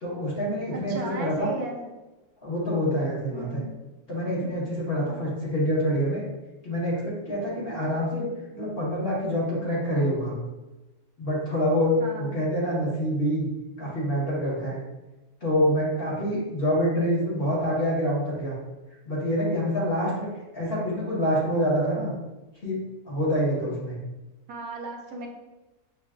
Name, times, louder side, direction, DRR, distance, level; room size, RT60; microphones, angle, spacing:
voice 1, 0.0-1.5 2.4-3.6 4.1-6.2 6.6-8.2 8.5-10.3 11.2-13.5 13.8-14.8 15.4-18.6 19.1-20.3 20.5-22.1 22.6-22.8 23.1-24.0, equal, 40° left, -7 dB, 1.3 m, -26 dB
voice 2, 0.7-1.9 3.3-3.7 12.0-12.3 24.5-25.3, right 2 dB, 75° right, 1 dB, 1.1 m, -35 dB
5.6 x 2.5 x 2.4 m, 1.1 s
omnidirectional pair, 1.7 m